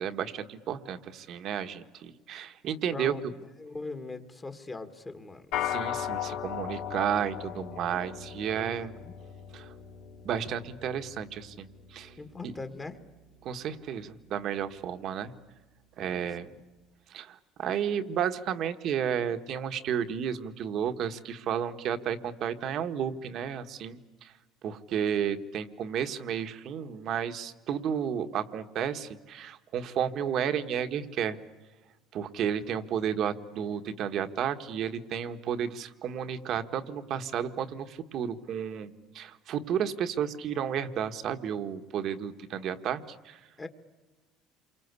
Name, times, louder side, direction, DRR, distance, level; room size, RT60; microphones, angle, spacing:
voice 1, 0.0-3.1 5.6-8.9 9.5-9.7 10.2-12.1 12.4-12.5 13.4-15.3 16.0-16.5 17.1-24.3 24.6-31.4 32.1-43.4, right 8 dB, 50° right, 9 dB, 1.5 m, -32 dB
voice 2, 2.9-3.3 3.6-5.4 8.5-9.2 12.2-13.0 16.1-16.6 43.6-43.7, left 3 dB, 15° left, 8 dB, 1.7 m, -41 dB
sound 1, 5.5-15.0, left 10 dB, 70° left, 3.5 m, -39 dB
28.0 x 24.5 x 8.3 m, 1.2 s
cardioid pair, 145°, 0 cm